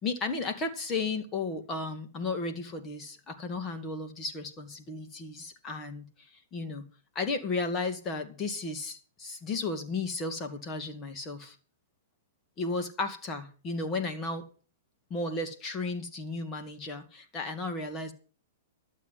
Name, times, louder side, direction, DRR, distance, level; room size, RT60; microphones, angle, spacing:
voice 1, 0.0-6.8 7.1-11.6 12.6-14.5 15.1-18.1, left 3 dB, 25° left, 7 dB, 2.3 m, -34 dB
12.0 x 7.5 x 7.6 m, 0.40 s
hypercardioid pair, 125°, 0 cm